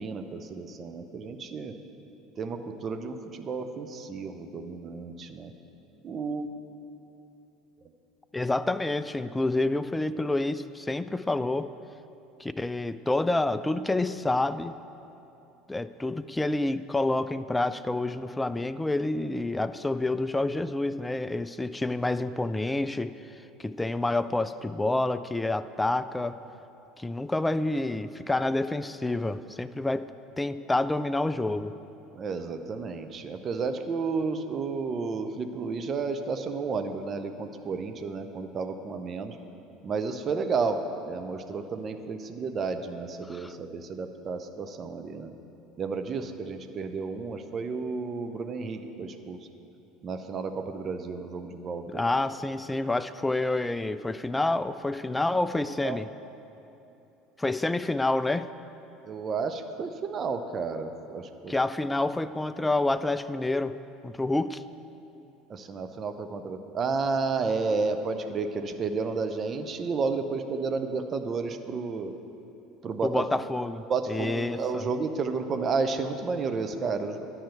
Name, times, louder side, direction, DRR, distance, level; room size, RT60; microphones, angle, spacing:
voice 1, 0.0-1.7 2.4-5.5 6.0-6.5 32.1-39.4 39.8-40.8 41.1-45.3 45.8-49.4 50.0-52.0 55.8-56.0 59.1-61.5 65.5-72.1 72.8-73.3 73.9-77.3, right 4 dB, 35° right, 7 dB, 0.6 m, -32 dB
voice 2, 8.3-11.7 12.4-14.8 15.7-23.1 23.6-26.4 27.0-30.1 30.4-31.7 43.3-43.5 51.9-56.1 57.4-58.5 61.5-63.8 64.0-64.6 73.0-74.9, left 2 dB, 10° left, 13 dB, 0.3 m, -28 dB
10.0 x 5.7 x 8.1 m, 2.9 s
figure-of-eight pair, 65°, 0 cm